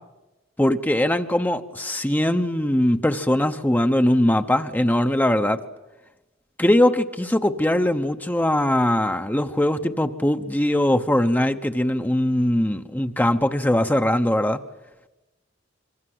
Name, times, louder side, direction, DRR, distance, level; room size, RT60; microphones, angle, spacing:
voice 1, 0.6-5.6 6.6-14.6, left 1 dB, 10° left, 7 dB, 1.0 m, -21 dB
26.0 x 24.5 x 7.9 m, 1.0 s
head